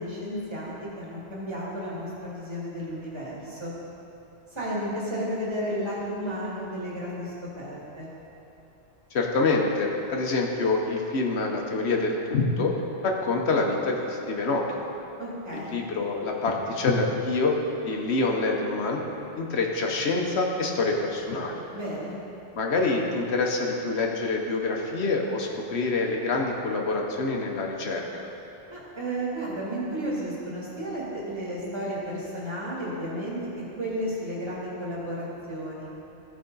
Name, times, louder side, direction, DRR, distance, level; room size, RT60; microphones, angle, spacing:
voice 1, 0.0-3.7 4.5-8.1 15.2-15.8 21.7-22.2 28.7-35.9, equal, 25° right, -7 dB, 2.0 m, -33 dB
voice 2, 9.1-12.7 13.0-14.9 15.5-17.6 17.8-19.0 19.4-21.6 22.6-28.3, left 3 dB, 65° left, 1 dB, 1.1 m, -26 dB
14.5 x 4.8 x 3.9 m, 2.9 s
omnidirectional pair, 1.2 m